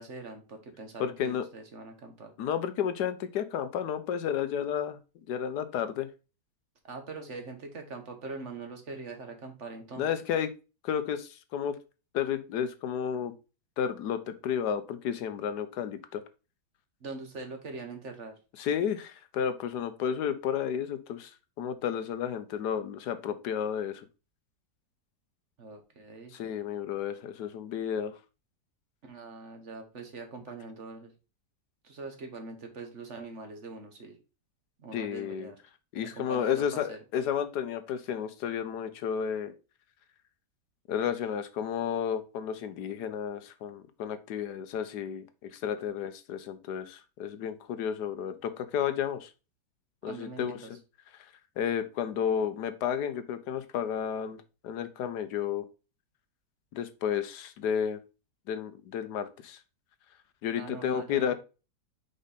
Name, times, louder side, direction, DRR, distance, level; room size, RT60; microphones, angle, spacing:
voice 1, 0.0-2.3 6.8-10.1 17.0-18.4 25.6-26.3 29.0-31.1 31.8-34.2 34.8-35.6 36.2-37.0 50.1-50.7 60.6-61.3, right 3 dB, 45° right, 5 dB, 1.5 m, -43 dB
voice 2, 1.0-1.4 2.4-5.0 5.3-6.1 10.0-10.5 10.8-11.8 12.1-13.3 13.8-16.2 18.6-21.3 21.6-24.1 26.3-28.1 34.9-35.5 35.9-39.5 40.9-45.3 45.5-49.3 50.0-50.7 51.6-54.4 54.6-55.6 56.7-58.0 58.5-59.6 60.4-61.3, left 8 dB, 80° left, 11 dB, 1.3 m, -32 dB
5.2 x 5.0 x 4.1 m, 0.31 s
omnidirectional pair, 1.8 m